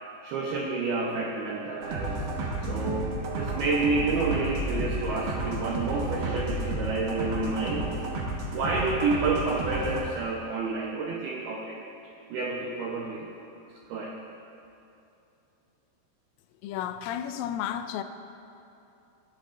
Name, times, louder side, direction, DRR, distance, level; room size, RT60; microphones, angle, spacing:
voice 1, 0.2-2.2 2.6-7.9 8.5-11.8 12.3-13.5 13.9-14.1, right 3 dB, 80° right, -2 dB, 2.2 m, -29 dB
sound 1, 1.8-10.0, right 2 dB, 65° right, 3.0 m, -32 dB
voice 2, 16.6-18.0, left 10 dB, 85° left, 8 dB, 3.1 m, -32 dB
19.0 x 14.0 x 2.5 m, 2.7 s
omnidirectional pair, 5.7 m